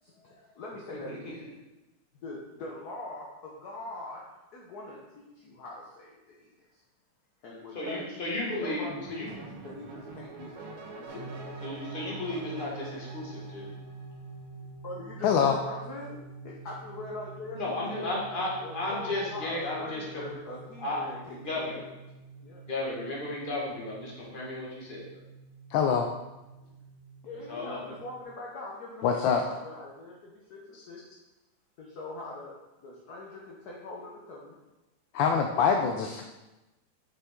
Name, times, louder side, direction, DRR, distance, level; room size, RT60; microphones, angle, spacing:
voice 1, 0.0-1.5 2.1-4.2 4.5-6.8 7.4-8.1 8.5-11.2 14.8-16.2 16.4-18.1 18.6-21.5 22.4-22.6 27.2-31.0 31.8-34.6 35.2-35.3, left 2 dB, 55° left, -3 dB, 1.3 m, -42 dB
voice 2, 7.7-9.3 11.6-13.7 17.5-20.3 20.8-21.0 21.4-21.8 22.7-25.1 27.5-27.8, left 1 dB, 25° left, -4 dB, 1.7 m, -34 dB
sound 1, 8.9-14.3, right 2 dB, 90° right, 2.0 m, -46 dB
sound 2, 11.1-28.2, right 3 dB, 70° right, 2.7 m, -47 dB
voice 3, 15.2-15.6 25.7-26.1 29.0-29.4 30.7-30.8 35.1-36.2, left 7 dB, 75° left, 3 dB, 1.2 m, -24 dB
7.0 x 5.7 x 3.7 m, 1.0 s
omnidirectional pair, 2.4 m